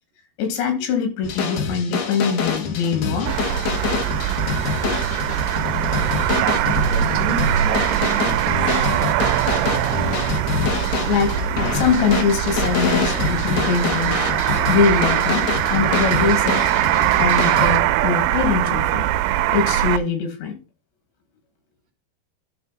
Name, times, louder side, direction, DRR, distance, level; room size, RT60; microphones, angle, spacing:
voice 1, 0.4-3.3 4.0-4.1 4.8-4.9 11.1-11.4 11.7-14.2 14.7-16.6 17.2-19.1 19.5-20.5, left 6 dB, 80° left, 5 dB, 4.3 m, -22 dB
sound 1, 1.2-17.8, left 5 dB, 65° left, 2.0 m, -26 dB
sound 2, 3.3-20.0, right 12 dB, 80° right, 2.5 m, -21 dB
voice 2, 6.3-9.1, right 5 dB, 50° right, 3 dB, 2.3 m, -32 dB
11.0 x 5.0 x 4.0 m, 0.32 s
omnidirectional pair, 5.0 m